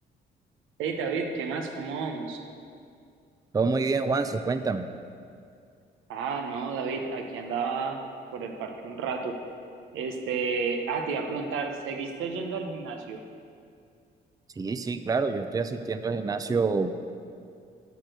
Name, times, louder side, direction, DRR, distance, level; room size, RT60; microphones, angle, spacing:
voice 1, 0.8-2.5 6.1-8.0 8.3-9.4 9.9-13.2, right 5 dB, 90° right, 4 dB, 1.0 m, -31 dB
voice 2, 3.5-4.9 14.6-16.9, right 4 dB, 20° right, 9 dB, 0.4 m, -27 dB
12.0 x 4.6 x 6.6 m, 2.3 s
cardioid pair, 90°, 20 cm